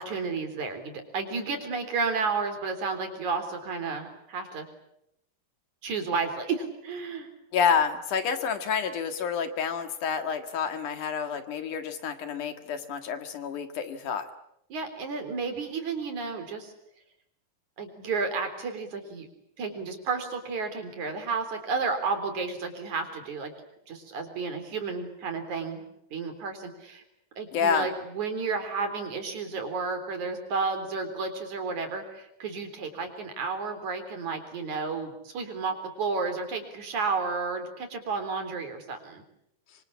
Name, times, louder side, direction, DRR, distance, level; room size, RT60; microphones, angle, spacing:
voice 1, 0.1-4.7 5.8-7.3 14.7-16.7 17.8-19.3 19.6-23.5 23.9-25.8 26.1-27.0 27.4-39.2, right 4 dB, 60° right, 6 dB, 5.1 m, -32 dB
voice 2, 7.5-14.3 27.5-27.9, left 6 dB, 65° left, 8 dB, 3.2 m, -28 dB
26.0 x 25.5 x 8.6 m, 0.79 s
omnidirectional pair, 3.9 m